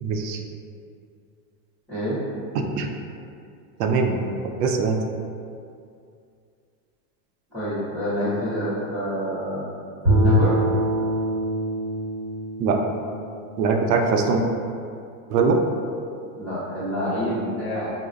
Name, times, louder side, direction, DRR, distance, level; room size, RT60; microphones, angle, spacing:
voice 1, 0.0-0.4 2.5-2.9 3.8-4.3 4.6-5.0 12.6-12.8 13.6-14.4 15.3-15.6, right 4 dB, 80° right, 3 dB, 0.5 m, -22 dB
voice 2, 1.9-2.2 7.5-9.7 10.0-10.5 14.1-14.2 16.3-17.9, equal, 5° left, -20 dB, 0.4 m, -27 dB
Bowed string instrument, 10.0-14.3, equal, 25° right, 0.7 m, -24 dB
5.1 x 2.0 x 2.4 m, 2.4 s
supercardioid pair, 175°, 48 cm